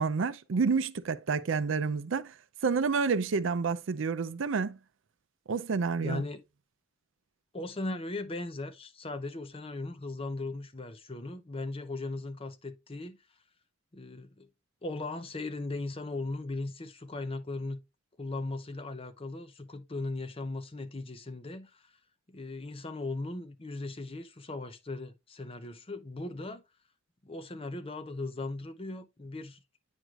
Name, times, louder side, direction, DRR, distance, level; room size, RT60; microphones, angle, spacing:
voice 1, 0.0-2.3 2.6-4.8 5.5-6.2, right 5 dB, 70° right, 0.5 m, -29 dB
voice 2, 6.0-6.4 7.5-13.2 13.9-14.5 14.8-17.8 18.2-21.9 22.3-26.6 27.2-29.6, left 2 dB, 25° left, 0.6 m, -38 dB
9.0 x 4.8 x 2.4 m
head